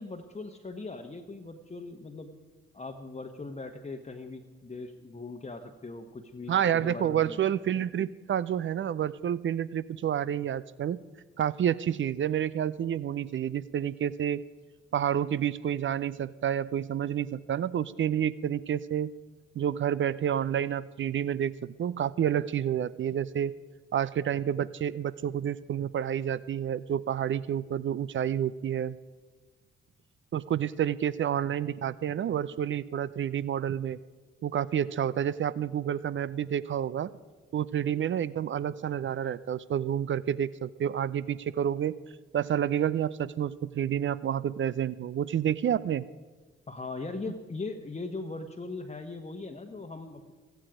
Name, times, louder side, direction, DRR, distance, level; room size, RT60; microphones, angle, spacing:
voice 1, 0.0-2.4 2.7-6.5 6.8-7.4 46.7-50.3, left 3 dB, 20° left, 4 dB, 1.2 m, -40 dB
voice 2, 6.5-11.0 11.4-14.4 14.9-19.1 19.6-23.5 23.9-29.0 30.3-34.0 34.4-37.1 37.5-41.9 42.3-46.0, right 9 dB, 40° right, 18 dB, 0.6 m, -29 dB
16.5 x 14.0 x 5.0 m, 1.3 s
figure-of-eight pair, 40°, 30 cm